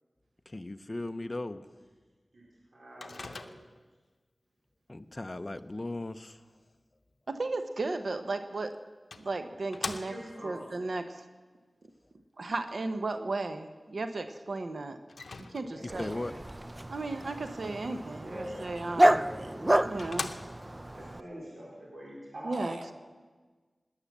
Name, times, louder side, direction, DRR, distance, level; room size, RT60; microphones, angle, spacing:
voice 1, 0.5-1.7 4.9-6.4 15.8-16.3, left 2 dB, 35° left, 10 dB, 0.7 m, -37 dB
voice 2, 2.7-3.6 10.0-10.6 15.5-16.3 18.0-19.5 20.9-22.8, equal, 60° right, -5 dB, 4.2 m, -44 dB
Microwave oven, 3.0-3.9 8.3-8.4 9.1-10.5 15.1-16.0 19.1-19.2 19.6-19.7 20.0-20.9, left 3 dB, 80° left, 0.7 m, -40 dB
voice 3, 7.3-8.8 9.1-10.1 10.4-11.2 12.4-15.0 15.5-16.1 16.9-19.2 19.9-20.3 22.4-22.9, right 3 dB, 75° right, 8 dB, 1.0 m, -35 dB
Dog, 15.9-21.2, right 1 dB, 25° right, 0.4 m, -29 dB
18.5 x 9.9 x 7.4 m, 1.4 s
wide cardioid pair, 65°, 0 cm